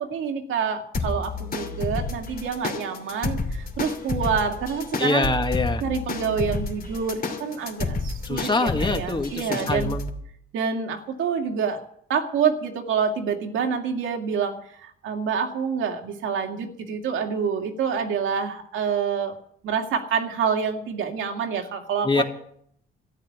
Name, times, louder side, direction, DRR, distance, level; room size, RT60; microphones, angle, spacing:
voice 1, 0.0-5.3 5.8-9.9 10.5-11.8 12.1-14.6 14.8-19.3 19.6-22.2, right 6 dB, 80° right, 3 dB, 2.4 m, -27 dB
sound 1, 0.9-10.1, left 3 dB, 50° left, 2.9 m, -30 dB
voice 2, 5.0-5.8 8.3-10.1 22.0-22.2, left 3 dB, 25° left, 6 dB, 2.0 m, -24 dB
13.0 x 9.8 x 9.6 m, 0.67 s
cardioid pair, 90°, 20 cm